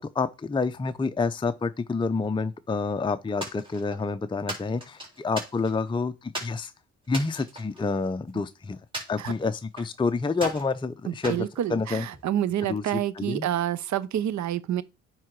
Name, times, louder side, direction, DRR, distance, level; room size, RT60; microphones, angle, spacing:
voice 1, 0.1-6.7 7.1-8.8 9.1-12.0 12.7-13.5, left 4 dB, 15° left, 0.6 m, -28 dB
sound 1, 3.4-4.1 4.5-5.9 6.3-6.6 7.1-8.4 8.9-10.0 10.3-10.7 11.2-12.3, equal, 15° right, 4.0 m, -37 dB
voice 2, 11.1-14.8, right 11 dB, 70° right, 0.8 m, -28 dB
9.4 x 3.7 x 4.7 m
cardioid pair, 90°, 30 cm